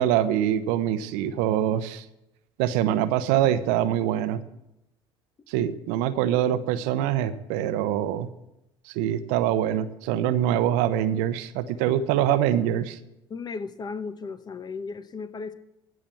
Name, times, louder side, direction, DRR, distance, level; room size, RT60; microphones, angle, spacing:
voice 1, 0.0-2.0 2.6-4.4 5.5-8.3 8.9-13.0, right 11 dB, 65° right, 12 dB, 0.8 m, -24 dB
voice 2, 13.3-15.5, left 4 dB, 30° left, 13 dB, 1.0 m, -35 dB
15.5 x 6.2 x 7.3 m, 0.87 s
hypercardioid pair, 65°, 14 cm